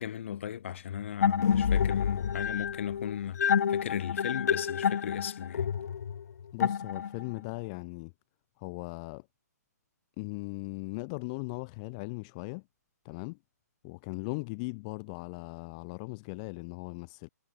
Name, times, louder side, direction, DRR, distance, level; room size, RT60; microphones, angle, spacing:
voice 1, 0.0-3.4 3.7-5.7, left 10 dB, 45° left, 4.6 m, -36 dB
sound 1, 1.2-7.4, left 7 dB, 65° left, 0.6 m, -28 dB
voice 2, 6.5-8.1 8.6-9.3 10.2-12.6 13.0-13.4 13.8-17.3, left 29 dB, 20° left, 2.0 m, -38 dB
hypercardioid pair, 170°, 9 cm